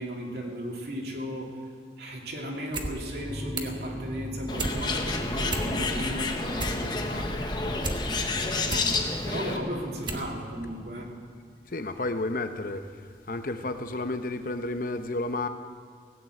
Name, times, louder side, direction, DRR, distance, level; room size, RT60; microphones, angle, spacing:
voice 1, 0.0-1.6 2.0-8.9 9.2-11.1, equal, 65° right, -1 dB, 2.7 m, -36 dB
sound 1, 2.7-2.9 3.2-3.8 4.2-4.8 5.2-5.3 5.5-6.0 6.4-8.0 8.4-8.9 9.5-9.6 10.0-10.3 10.6-10.7, right 2 dB, 25° right, 1.1 m, -33 dB
sound 2, 3.2-11.4, equal, 5° right, 1.8 m, -40 dB
Bird, 4.5-9.6, left 3 dB, 25° left, 1.0 m, -30 dB
voice 2, 11.7-12.8 13.3-15.5, left 2 dB, 50° left, 8 dB, 0.8 m, -31 dB
17.0 x 9.2 x 7.7 m, 2.2 s
head